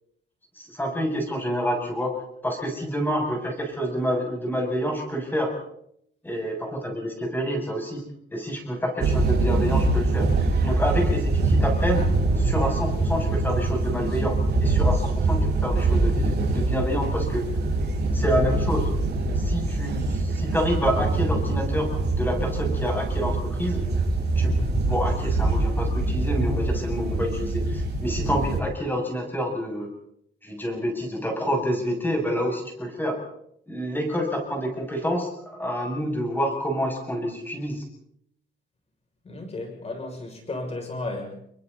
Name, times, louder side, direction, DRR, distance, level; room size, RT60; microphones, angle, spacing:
voice 1, 0.6-2.2 2.4-5.5 6.2-8.0 8.3-10.3 10.6-12.0 12.4-17.4 18.1-18.9 19.3-23.8 24.4-24.6 24.9-29.9 30.4-33.2 33.7-37.8, equal, 10° left, 7.4 m, -28 dB
sound 1, 9.0-28.6, right 2 dB, 60° right, 7.1 m, -24 dB
voice 2, 39.3-41.3, left 2 dB, 35° left, 6.8 m, -34 dB
29.5 x 23.5 x 4.2 m
wide cardioid pair, 155°, 20 cm